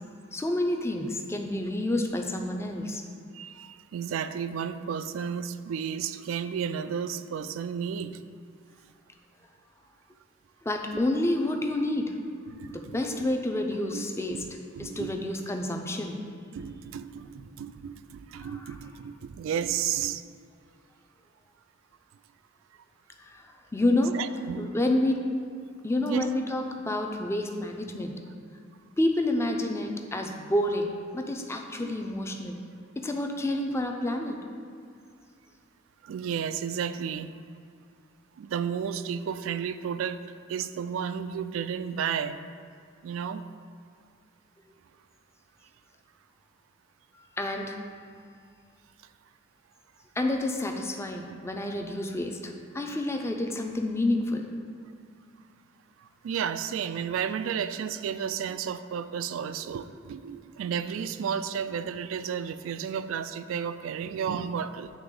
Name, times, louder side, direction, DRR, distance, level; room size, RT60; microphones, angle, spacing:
voice 1, 0.3-3.0 10.7-12.2 12.7-14.4 14.8-16.2 18.4-18.7 23.2-23.4 23.7-24.2 24.6-25.3 25.8-28.1 29.0-32.6 33.0-34.4 47.4-47.8 50.2-54.5, left 1 dB, 15° left, 3 dB, 0.4 m, -29 dB
voice 2, 3.3-8.2 12.5-13.3 13.9-14.5 14.7-15.2 16.5-20.4 24.1-24.8 25.6-26.2 31.8-32.1 33.7-33.8 34.1-34.4 36.0-37.3 38.4-40.2 40.5-42.4 43.0-43.4 51.3-51.4 52.7-52.9 56.2-64.9, right 7 dB, 85° right, 12 dB, 0.3 m, -33 dB
9.6 x 3.4 x 3.7 m, 2.3 s
head